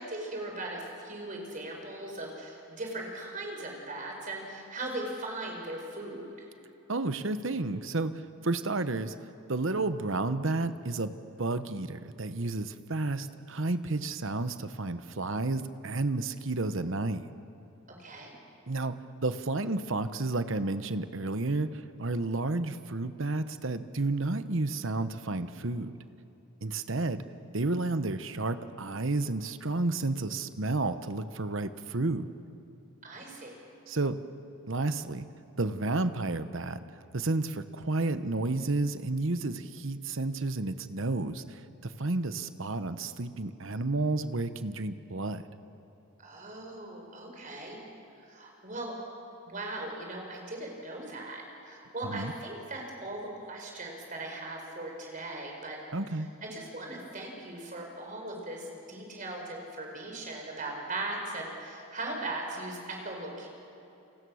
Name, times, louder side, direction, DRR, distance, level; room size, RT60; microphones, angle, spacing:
voice 1, 0.0-6.5 17.9-18.3 33.0-33.6 46.2-47.8 48.3-48.9 49.4-55.8 56.4-63.5, right 2 dB, 35° right, 1 dB, 4.9 m, -39 dB
voice 2, 6.9-9.1 9.5-17.3 18.7-19.0 19.2-26.0 26.6-27.2 27.5-32.3 33.9-34.2 34.7-35.3 35.6-36.8 37.1-45.4 52.0-52.3 55.9-56.3, right 2 dB, 60° right, 11 dB, 1.0 m, -31 dB
29.0 x 27.5 x 6.4 m, 2.8 s
head